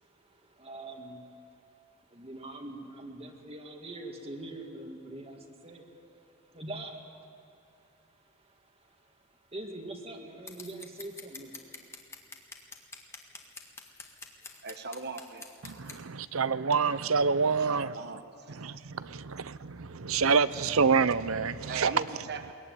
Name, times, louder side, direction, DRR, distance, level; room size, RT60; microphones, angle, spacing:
voice 1, 0.0-1.6 2.0-11.7, right 1 dB, 30° right, 2.1 m, -44 dB
Scissors, 10.5-16.0, left 3 dB, 15° left, 1.8 m, -46 dB
voice 2, 14.6-15.4 17.6-18.7 21.7-22.5, right 4 dB, 55° right, 1.2 m, -39 dB
voice 3, 15.6-17.9 18.5-21.9, right 5 dB, 75° right, 0.7 m, -27 dB
22.0 x 20.5 x 9.4 m
head